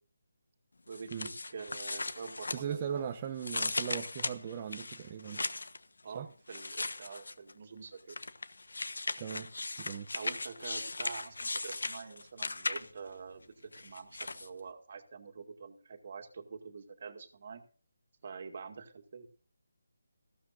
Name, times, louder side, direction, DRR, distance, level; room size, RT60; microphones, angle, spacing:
sound 1, 0.9-3.0 3.4-5.8 6.5-7.5 8.1-13.1 13.7-14.5, left 3 dB, 80° left, 1.1 m, -38 dB
voice 1, 0.9-3.0 6.0-8.2 10.1-17.6 18.2-19.3, right 5 dB, 45° right, 7 dB, 2.0 m, -46 dB
voice 2, 2.5-5.4 6.1-6.3 9.2-9.5 9.8-10.1, right 8 dB, 25° right, 4 dB, 0.8 m, -38 dB
15.0 x 13.0 x 2.6 m, 0.40 s
figure-of-eight pair, 165°, 0 cm